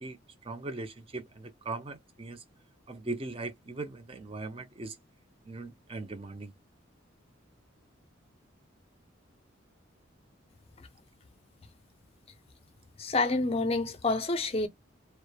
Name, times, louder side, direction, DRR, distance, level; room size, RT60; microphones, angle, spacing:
voice 1, 0.0-2.4 2.9-5.0 5.4-6.5, right 3 dB, 30° right, 0.5 m, -39 dB
voice 2, 13.0-14.7, left 3 dB, 30° left, 0.5 m, -28 dB
3.0 x 2.0 x 2.2 m
head